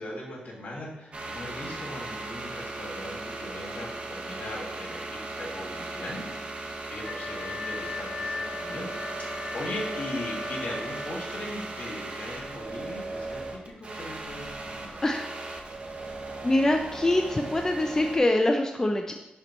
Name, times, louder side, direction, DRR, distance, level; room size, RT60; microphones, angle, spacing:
voice 1, 0.0-6.3 6.5-15.0, left 1 dB, 65° left, -2 dB, 2.0 m, -39 dB
sound 1, 1.1-18.2, right 2 dB, 40° right, 0.9 m, -37 dB
Wind instrument woodwind instrument, 7.0-11.5, left 3 dB, 35° left, 2.2 m, -37 dB
voice 2, 15.0-15.6 16.4-19.1, left 1 dB, 20° left, 3 dB, 0.4 m, -24 dB
10.5 x 4.3 x 3.1 m, 0.99 s
wide cardioid pair, 135°, 3 cm